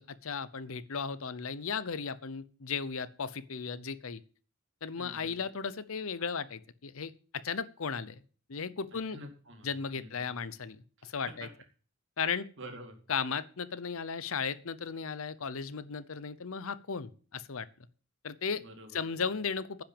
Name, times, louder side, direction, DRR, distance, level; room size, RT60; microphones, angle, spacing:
voice 1, 0.0-4.2 4.8-8.2 8.5-9.2 9.6-11.5 12.2-12.5 13.1-17.7 18.2-18.6 18.9-19.8, left 5 dB, 70° left, 16 dB, 0.7 m, -36 dB
voice 2, 5.0-5.5 9.1-10.3 11.3-11.5 12.6-13.0 18.5-19.2, right 1 dB, 55° right, 4 dB, 2.4 m, -48 dB
10.0 x 5.9 x 8.7 m, 0.41 s
head